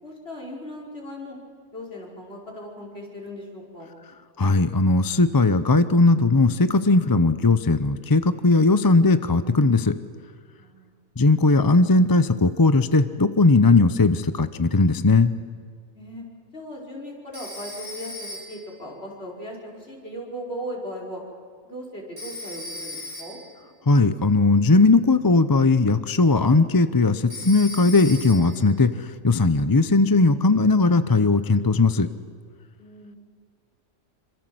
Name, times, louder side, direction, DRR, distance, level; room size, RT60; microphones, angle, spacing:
voice 1, 0.0-1.4 1.7-3.9 10.6-11.0 15.9-16.2 16.5-21.2 21.6-23.4 32.8-33.2, equal, 45° left, -2 dB, 5.4 m, -38 dB
voice 2, 4.4-10.0 11.2-15.3 23.9-32.1, left 3 dB, 25° left, 12 dB, 0.5 m, -18 dB
Telephone, 17.3-18.8 22.2-23.6 27.3-28.7, left 1 dB, 85° right, 5.7 m, -37 dB
27.0 x 25.0 x 7.8 m, 2.1 s
omnidirectional pair, 1.5 m